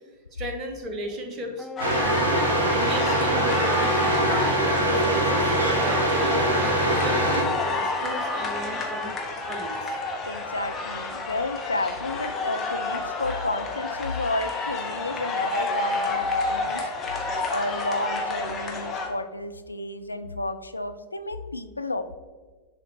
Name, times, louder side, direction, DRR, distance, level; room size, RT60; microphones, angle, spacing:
voice 1, 0.3-1.7 2.7-10.0, equal, 30° right, 4 dB, 1.2 m, -35 dB
Wind instrument woodwind instrument, 1.6-9.1, left 3 dB, ahead, 0.6 m, -33 dB
sound 1, 1.8-19.1, left 3 dB, 25° left, 1.3 m, -30 dB
sound 2, 1.8-7.4, right 2 dB, 65° right, 1.3 m, -23 dB
voice 2, 10.3-16.9 17.5-22.2, left 2 dB, 80° left, 9 dB, 0.4 m, -31 dB
10.5 x 4.1 x 2.9 m, 1.4 s
figure-of-eight pair, 90°, 0 cm